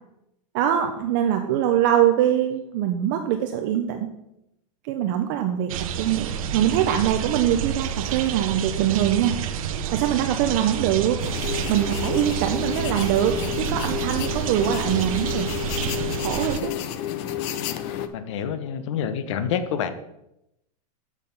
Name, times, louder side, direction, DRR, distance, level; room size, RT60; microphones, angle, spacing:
voice 1, 0.5-4.1 4.8-9.4 9.9-15.5 16.2-16.8, right 10 dB, 35° right, 5 dB, 0.5 m, -23 dB
sound 1, 5.7-16.6, right 8 dB, 65° right, 0.8 m, -29 dB
sound 2, 11.2-18.1, left 11 dB, 30° left, 0.5 m, -30 dB
voice 2, 18.1-19.9, left 8 dB, 50° left, 10 dB, 0.9 m, -27 dB
7.4 x 6.6 x 5.3 m, 0.85 s
supercardioid pair, 180°, 19 cm